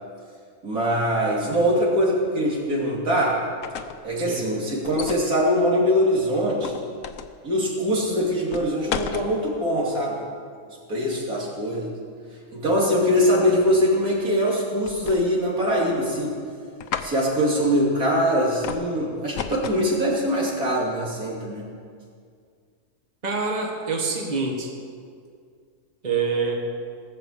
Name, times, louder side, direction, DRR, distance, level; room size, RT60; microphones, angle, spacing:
voice 1, 0.6-3.4 4.0-6.7 7.4-10.3 10.9-11.9 12.5-16.3 17.0-21.6, equal, 85° right, -4 dB, 3.5 m, -22 dB
sound 1, 3.4-4.1 4.9-5.3 6.6-7.4 8.5-9.3 14.9-15.5 15.8-16.3 16.8-17.1 18.6-18.9 19.4-19.9, left 7 dB, 70° left, 1.1 m, -32 dB
voice 2, 23.2-24.7 26.0-26.6, right 4 dB, 30° right, 0 dB, 1.6 m, -26 dB
18.5 x 7.4 x 7.4 m, 2.2 s
omnidirectional pair, 1.5 m